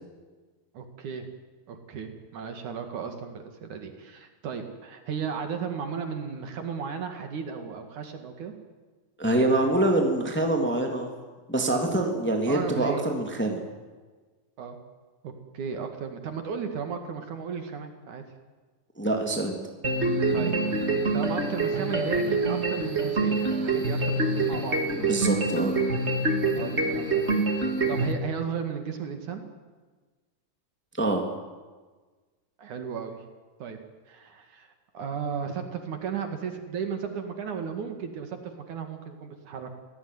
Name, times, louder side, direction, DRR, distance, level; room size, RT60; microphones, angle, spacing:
voice 1, 0.7-1.3 1.7-8.5 12.5-13.0 14.6-14.8 15.2-18.2 20.3-20.5 20.9-25.1 26.4-29.4 32.6-33.2 33.6-33.8 34.1-39.8, right 6 dB, 60° right, 6 dB, 3.3 m, -35 dB
voice 2, 9.2-11.1 11.5-13.6 19.0-19.6 25.0-25.7 31.0-31.2, right 1 dB, 5° left, 2 dB, 2.4 m, -25 dB
sound 1, 19.8-28.1, right 3 dB, 25° right, 1.9 m, -26 dB
26.0 x 17.5 x 9.6 m, 1.4 s
omnidirectional pair, 4.1 m